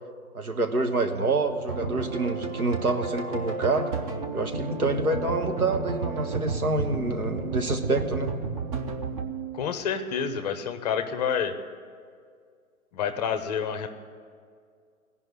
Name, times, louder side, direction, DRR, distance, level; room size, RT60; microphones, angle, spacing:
voice 1, 0.3-3.9 4.3-8.3, right 2 dB, 90° right, 6 dB, 1.3 m, -27 dB
sound 1, 1.7-9.7, right 4 dB, 25° right, 0.7 m, -32 dB
voice 2, 9.5-11.5 12.9-13.9, left 7 dB, 30° left, 9 dB, 0.7 m, -28 dB
16.0 x 5.5 x 9.7 m, 2.2 s
figure-of-eight pair, 130°, 43 cm